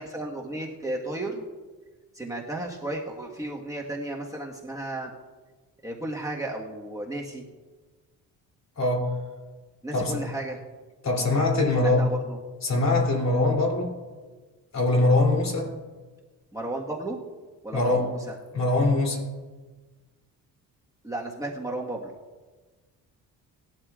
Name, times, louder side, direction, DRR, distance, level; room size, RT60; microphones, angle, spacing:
voice 1, 0.0-1.5 2.1-5.1 5.8-7.4 9.8-10.6 11.8-12.4 16.5-17.2 17.6-18.3 21.0-22.1, right 2 dB, 10° right, -2 dB, 1.5 m, -33 dB
voice 2, 8.8-9.1 9.9-10.2 11.0-12.1 12.6-14.0 14.7-15.7 17.7-18.0 18.5-19.2, left 2 dB, 50° left, 1 dB, 3.2 m, -23 dB
19.5 x 11.5 x 2.5 m, 1.3 s
cardioid pair, 110°, 35 cm